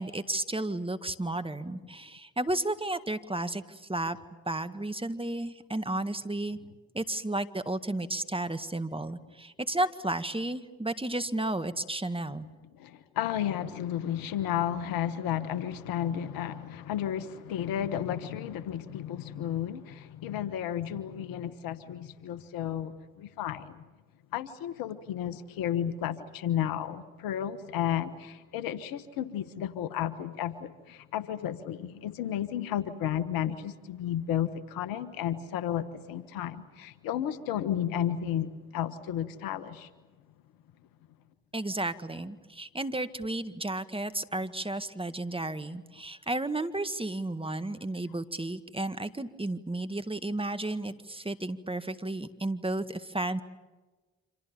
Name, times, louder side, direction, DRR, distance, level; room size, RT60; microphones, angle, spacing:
voice 1, 0.0-4.2 4.5-6.6 6.9-12.5 41.5-53.4, right 2 dB, 15° right, 10 dB, 1.9 m, -33 dB
voice 2, 12.7-23.8 24.3-39.9, left 10 dB, 85° left, 13 dB, 1.4 m, -33 dB
28.0 x 26.5 x 7.1 m, 1.2 s
hypercardioid pair, 40°, 34 cm